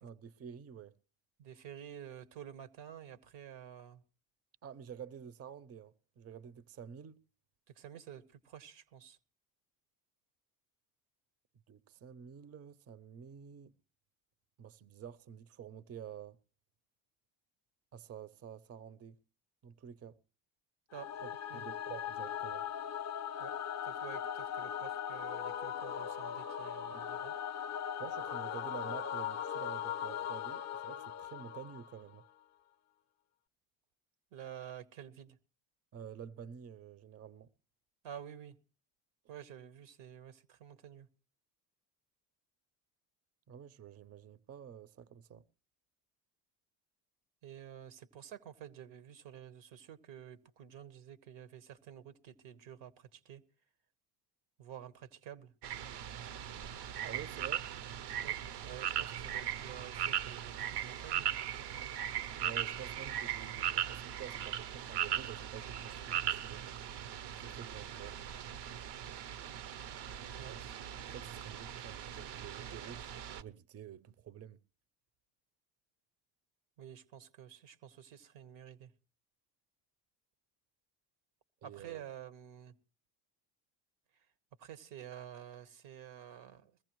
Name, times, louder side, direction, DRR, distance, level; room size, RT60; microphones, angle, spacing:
voice 1, 0.0-1.0 4.6-7.2 11.7-13.8 14.6-16.4 17.9-19.2 19.6-20.2 21.2-22.6 28.0-32.2 35.9-37.5 43.5-45.4 57.0-57.7 62.4-66.7 67.3-68.2 70.5-70.7 71.0-73.1 73.4-74.6 81.6-82.0, right 8 dB, 35° right, 0.6 m, -49 dB
voice 2, 1.4-4.0 7.7-9.2 20.9-21.1 21.5-21.6 23.4-23.5 23.8-27.3 34.3-35.4 38.0-38.6 39.3-41.1 47.4-53.4 54.6-55.5 58.2-58.4 58.6-61.3 70.4-70.6 76.8-78.9 81.6-82.7 84.6-86.8, right 10 dB, 80° right, 1.3 m, -50 dB
Singing / Musical instrument, 20.9-32.2, left 9 dB, 40° left, 0.7 m, -39 dB
sound 1, 55.6-73.4, right 10 dB, 65° right, 0.8 m, -39 dB
21.5 x 15.0 x 3.0 m
supercardioid pair, 75°, 44 cm